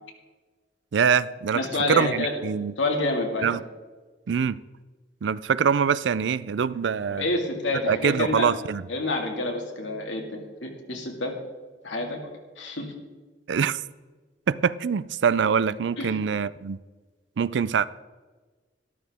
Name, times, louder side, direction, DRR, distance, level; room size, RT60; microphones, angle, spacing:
voice 1, 0.9-1.6 1.9-2.7 3.4-3.6 4.3-4.6 5.2-7.3 7.9-8.8 13.5-13.8 14.5-16.8 17.4-17.8, right 6 dB, 70° right, 18 dB, 0.4 m, -24 dB
voice 2, 1.5-2.3 2.8-3.5 7.1-8.5 8.9-11.3 11.8-12.2 12.6-12.9 16.0-16.2, left 2 dB, 90° left, 2 dB, 2.1 m, -28 dB
13.0 x 12.5 x 3.6 m, 1.3 s
head